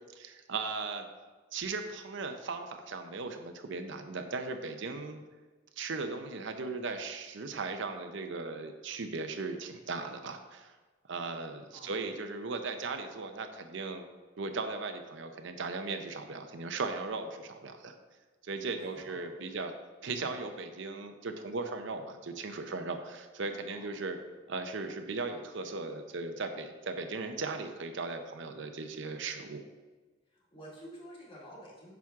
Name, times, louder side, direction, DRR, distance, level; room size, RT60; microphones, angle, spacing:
voice 1, 0.1-1.1 1.5-5.2 5.8-10.7 11.1-14.0 14.4-17.9 18.4-19.7 20.0-24.2 24.5-29.6, right 3 dB, 65° right, 6 dB, 0.6 m, -37 dB
voice 2, 18.7-19.3 23.7-23.9 30.3-31.9, equal, 25° left, -5 dB, 2.2 m, -50 dB
9.2 x 6.0 x 3.6 m, 1.3 s
head